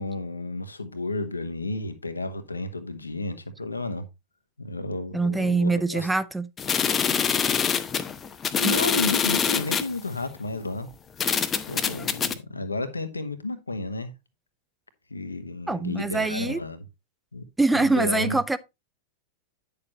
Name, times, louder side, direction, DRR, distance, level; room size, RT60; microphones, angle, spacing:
voice 1, 0.0-4.1 4.6-6.1 7.5-7.6 8.6-10.9 11.7-14.1 15.1-16.8 17.3-17.4 17.8-18.4, left 2 dB, 80° left, 1.2 m, -32 dB
voice 2, 5.1-6.5 8.6-8.8 15.7-16.6 17.6-18.6, right 3 dB, 5° right, 0.5 m, -24 dB
sound 1, 6.6-9.9 10.6-10.7 11.2-12.3, left 7 dB, 25° left, 0.8 m, -25 dB
9.7 x 6.7 x 3.0 m
figure-of-eight pair, 90°, 0 cm